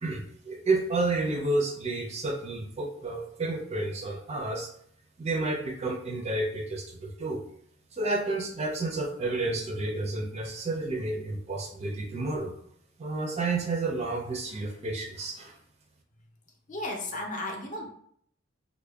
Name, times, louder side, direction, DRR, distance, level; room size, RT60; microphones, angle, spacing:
voice 1, 0.0-4.7 5.2-7.4 7.9-12.6 13.0-15.6, right 2 dB, 30° right, 3 dB, 0.4 m, -30 dB
voice 2, 16.7-17.9, left 1 dB, 40° left, 1 dB, 0.6 m, -34 dB
3.5 x 2.1 x 3.3 m, 0.65 s
head